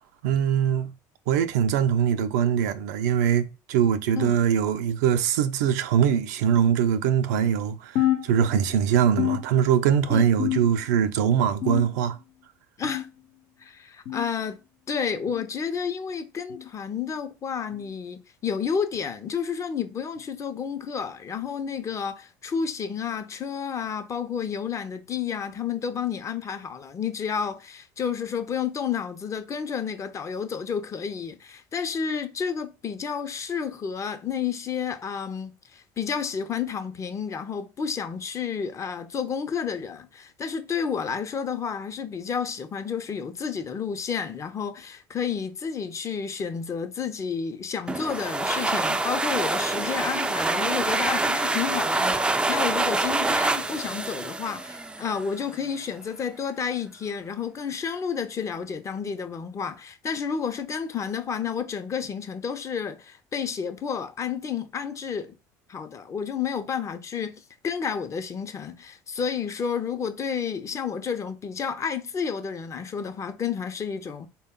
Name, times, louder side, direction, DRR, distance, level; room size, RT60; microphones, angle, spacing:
voice 1, 0.2-0.9 1.3-12.2, right 8 dB, 85° right, 0.4 m, -22 dB
sound 1, 8.0-8.8 9.2-10.0 10.4-11.0 11.6-12.2 12.8-13.2 14.1-14.3 15.3-15.5 16.5-16.7 17.7-17.9 18.9-19.1 20.2-20.3 21.4-21.5 22.6-22.7, left 13 dB, 70° left, 0.8 m, -29 dB
voice 2, 13.6-14.6 14.9-65.3 65.7-74.3, left 7 dB, 35° left, 0.6 m, -31 dB
sound 2, 47.9-55.4, right 2 dB, 10° right, 0.3 m, -26 dB
3.8 x 2.2 x 3.6 m
supercardioid pair, 80°, 9 cm